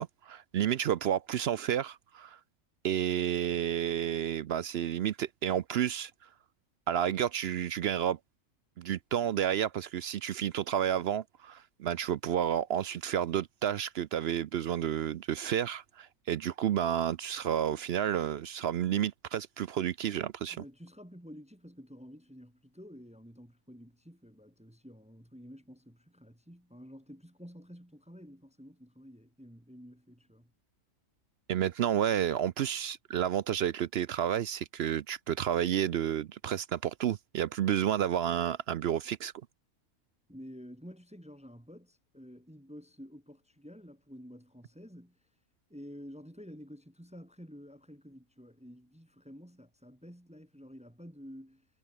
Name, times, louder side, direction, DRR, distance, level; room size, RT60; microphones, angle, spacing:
voice 1, 0.0-2.4 2.8-6.1 6.9-8.2 8.8-20.6 31.5-39.3, right 10 dB, 65° right, 0.6 m, -31 dB
voice 2, 20.5-30.5 40.3-45.2 45.7-51.7, equal, 5° right, 1.1 m, -50 dB
omnidirectional pair, 1.5 m